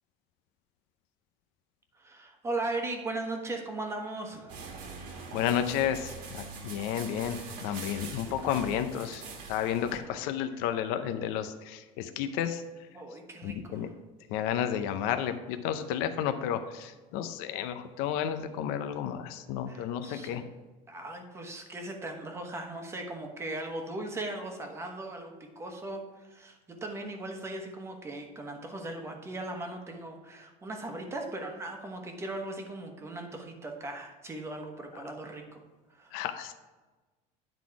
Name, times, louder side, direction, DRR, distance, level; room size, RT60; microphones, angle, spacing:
voice 1, 2.0-4.7 12.9-13.9 19.7-20.5 20.9-35.6 35.9-36.1, right 2 dB, 15° right, 3 dB, 1.1 m, -38 dB
sound 1, 4.5-10.0, right 4 dB, 60° right, 1.5 m, -43 dB
voice 2, 5.3-9.2 9.5-12.6 13.4-13.9 14.3-20.4 36.1-36.5, left 9 dB, 70° left, 9 dB, 0.6 m, -32 dB
10.5 x 4.1 x 4.7 m, 1.2 s
cardioid pair, 150°, 16 cm